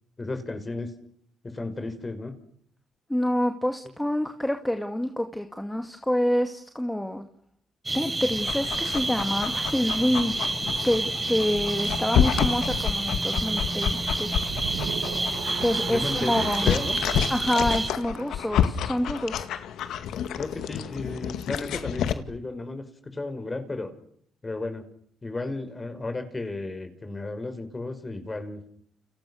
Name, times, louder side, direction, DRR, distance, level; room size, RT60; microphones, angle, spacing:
voice 1, 0.2-1.0 1.4-2.3 15.9-17.0 20.4-22.9 23.1-23.9 24.4-24.8 25.2-28.6, left 2 dB, 25° left, 8 dB, 5.8 m, -33 dB
voice 2, 3.1-7.2 7.9-10.6 10.8-14.3 15.6-16.7 17.3-19.4, equal, 5° left, 6 dB, 2.3 m, -27 dB
sound 1, 7.8-17.9, right 2 dB, 20° right, 6.5 m, -29 dB
Dog, 8.3-22.1, left 9 dB, 80° left, 2.0 m, -30 dB
sound 2, 14.5-18.7, right 10 dB, 85° right, 1.9 m, -38 dB
30.0 x 29.5 x 6.6 m, 0.66 s
cardioid pair, 90°, 0 cm